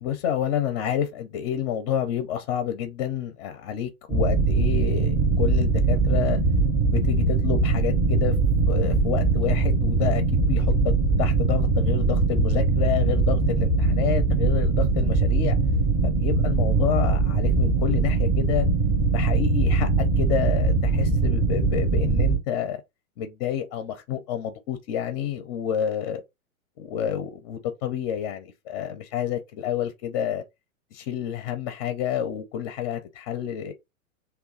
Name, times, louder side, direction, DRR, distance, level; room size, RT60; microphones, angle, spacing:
voice 1, 0.0-6.4 6.8-8.3 8.7-10.9 11.2-15.6 16.0-18.7 19.1-22.8 23.2-26.2 26.8-30.4 30.9-33.7, left 9 dB, 30° left, 0.5 m, -29 dB
sound 1, 4.1-22.4, right 3 dB, 20° right, 0.6 m, -21 dB
2.9 x 2.2 x 3.8 m
hypercardioid pair, 110°, 43 cm